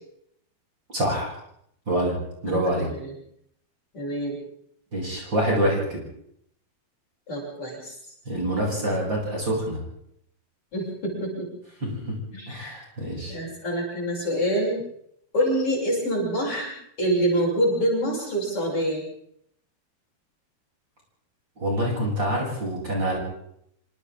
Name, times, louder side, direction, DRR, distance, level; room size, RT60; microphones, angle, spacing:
voice 1, 0.9-1.3 1.9-2.1 2.4-2.9 4.9-6.0 8.3-9.8 11.8-12.2 12.5-13.4 21.6-23.2, right 1 dB, 30° right, -3 dB, 8.7 m, -26 dB
voice 2, 2.5-3.1 3.9-4.4 7.3-8.0 10.7-11.5 11.8-11.9 12.3-12.7 13.3-14.8 15.3-16.7 17.0-19.0, right 1 dB, 35° left, -3 dB, 8.1 m, -26 dB
27.5 x 26.5 x 3.8 m, 0.72 s
omnidirectional pair, 4.4 m